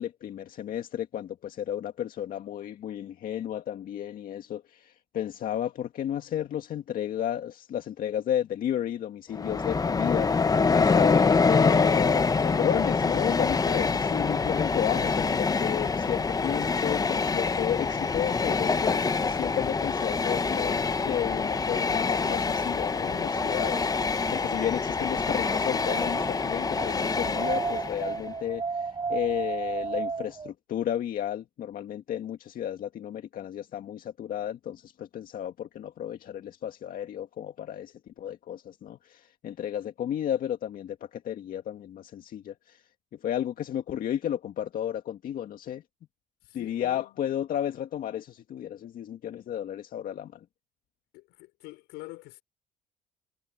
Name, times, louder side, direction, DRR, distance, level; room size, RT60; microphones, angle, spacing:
voice 1, 0.0-42.8 43.2-45.8 46.5-50.5, left 10 dB, 55° left, 1.9 m, -33 dB
Train, 9.3-28.2, left 4 dB, 20° left, 0.9 m, -26 dB
Wind, 22.7-30.5, right 5 dB, 25° right, 4.1 m, -35 dB
voice 2, 46.5-47.2 51.1-52.4, left 21 dB, 80° left, 6.0 m, -46 dB
supercardioid pair, 95°, 18 cm